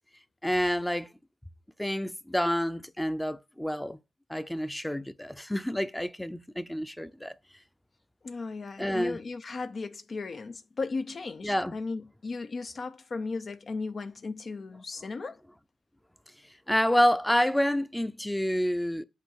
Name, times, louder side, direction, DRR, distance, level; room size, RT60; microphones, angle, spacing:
voice 1, 0.4-1.1 1.8-4.0 4.3-7.3 8.8-9.2 11.4-11.8 16.7-19.0, equal, 5° left, 0.6 m, -28 dB
voice 2, 8.2-15.4, left 3 dB, 50° left, 0.5 m, -36 dB
8.3 x 2.8 x 6.2 m
cardioid pair, 90°, 0 cm